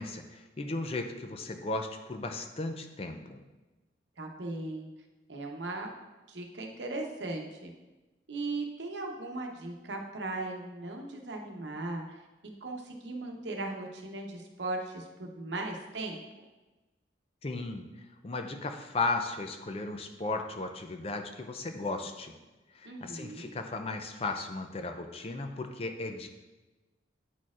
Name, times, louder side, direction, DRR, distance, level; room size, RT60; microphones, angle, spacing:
voice 1, 0.0-3.4 17.4-22.3 22.7-26.3, left 3 dB, 35° left, 6 dB, 0.4 m, -36 dB
voice 2, 4.2-4.9 5.3-5.9 6.3-7.7 8.3-12.2 12.6-16.2 22.8-23.5, right 2 dB, 85° right, 2 dB, 0.9 m, -38 dB
9.1 x 4.2 x 2.4 m, 1.1 s
head